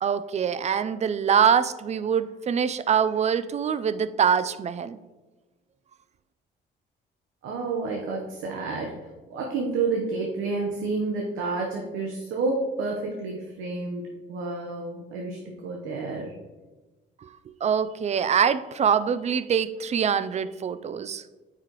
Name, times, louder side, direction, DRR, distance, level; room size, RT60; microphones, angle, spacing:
voice 1, 0.0-5.0 17.2-17.3 17.6-21.2, right 7 dB, 35° right, 15 dB, 0.4 m, -24 dB
voice 2, 7.4-9.0 9.3-16.3, right 3 dB, 85° right, 0 dB, 0.9 m, -30 dB
8.8 x 4.9 x 3.0 m, 1.2 s
cardioid pair, 90°, 20 cm